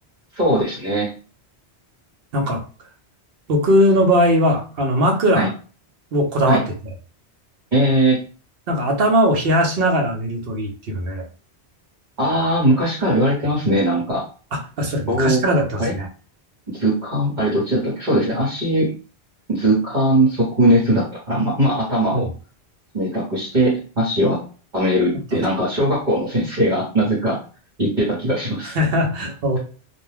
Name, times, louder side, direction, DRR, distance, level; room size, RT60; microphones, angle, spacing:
voice 1, 0.3-1.1 5.3-5.5 6.5-6.6 7.7-8.2 12.2-14.3 15.1-15.4 15.8-15.9 16.7-18.9 19.5-22.3 22.9-24.4 24.7-27.4 27.8-28.8, right 1 dB, 45° right, -7 dB, 1.2 m, -19 dB
voice 2, 3.5-5.5 6.1-6.6 8.7-11.2 14.5-16.1 22.1-22.2 28.7-29.6, equal, 65° right, 2 dB, 0.9 m, -19 dB
2.5 x 2.2 x 3.3 m, 0.37 s
omnidirectional pair, 1.1 m